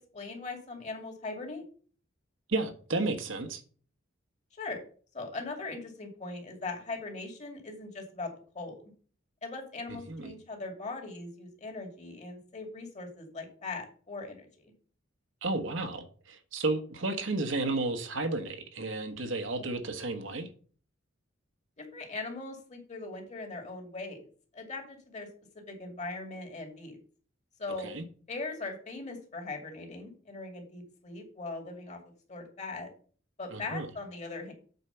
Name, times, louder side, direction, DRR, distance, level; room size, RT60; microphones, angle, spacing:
voice 1, 0.1-1.6 4.6-4.8 5.1-8.9 9.4-14.7 21.8-24.2 24.5-25.3 25.5-27.0 27.6-27.9 28.3-32.0 32.3-32.9 33.4-34.5, left 3 dB, 35° left, 2.6 m, -40 dB
voice 2, 2.5-3.6 9.9-10.3 15.4-20.5 27.8-28.0 33.5-33.9, right 2 dB, 70° right, 1.3 m, -32 dB
8.1 x 4.6 x 6.9 m
head